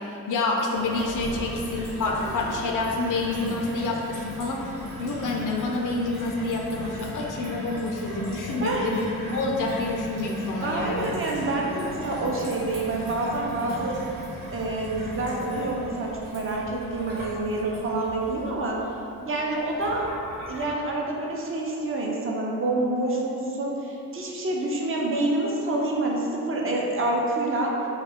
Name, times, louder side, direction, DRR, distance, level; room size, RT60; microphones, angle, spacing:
voice 1, 0.0-4.7 5.0-11.1, left 3 dB, 60° left, -1 dB, 0.4 m, -28 dB
Gurgling / Water tap faucet / Sink (filling or washing), 0.7-20.6, equal, 90° right, 1.1 m, -37 dB
voice 2, 10.6-14.0 14.5-18.8 19.3-20.1 20.5-27.7, right 2 dB, 35° right, -2 dB, 0.6 m, -27 dB
2.3 x 2.2 x 3.4 m, 2.9 s
supercardioid pair, 50°, 35 cm